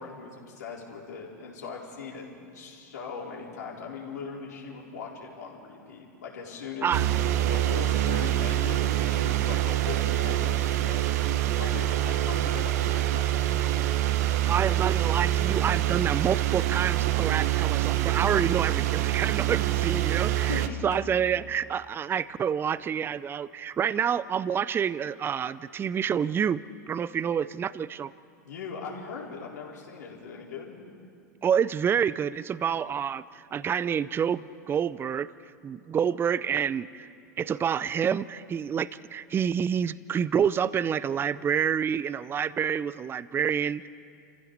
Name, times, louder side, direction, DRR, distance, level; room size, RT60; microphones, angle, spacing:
voice 1, 0.0-2.2 2.5-6.9 7.4-11.1 11.5-13.6 20.3-20.8 28.5-30.8, left 5 dB, 75° left, -3 dB, 4.3 m, -40 dB
sound 1, 6.9-20.7, right 13 dB, 65° right, 1.0 m, -25 dB
voice 2, 14.5-26.6 26.9-28.1 31.4-35.3 35.6-37.1 37.4-43.9, right 8 dB, 25° right, 18 dB, 0.5 m, -28 dB
28.0 x 15.0 x 6.6 m, 2.3 s
hypercardioid pair, 90°, 9 cm